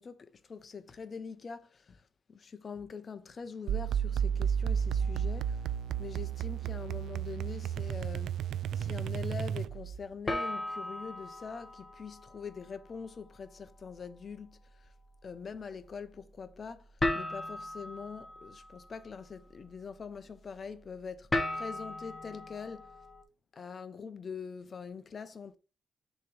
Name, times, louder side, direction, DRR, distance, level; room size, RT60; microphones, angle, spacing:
voice 1, 0.0-5.6 6.0-8.4 8.7-14.9 15.2-22.9 23.5-25.6, left 5 dB, 40° left, 0.7 m, -44 dB
sound 1, 3.7-10.0, right 8 dB, 90° right, 0.4 m, -32 dB
sound 2, 5.0-6.6 6.9-7.3 7.9-8.0 10.3-23.2, left 1 dB, 20° left, 1.2 m, -39 dB
6.6 x 3.0 x 4.8 m
wide cardioid pair, 145°, 0 cm